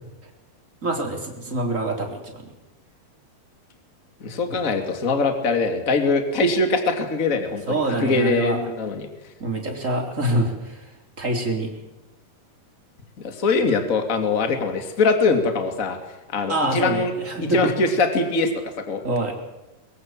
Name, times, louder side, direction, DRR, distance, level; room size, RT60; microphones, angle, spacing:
voice 1, 0.8-2.5 4.5-4.6 7.7-8.6 9.4-10.9 11.2-11.7 16.5-17.7 19.0-19.3, right 1 dB, 20° right, 2 dB, 3.7 m, -25 dB
voice 2, 4.2-9.1 13.2-16.0 16.3-17.1 17.5-19.0, left 3 dB, 25° left, 6 dB, 2.3 m, -22 dB
22.5 x 22.5 x 7.6 m, 1.0 s
omnidirectional pair, 4.5 m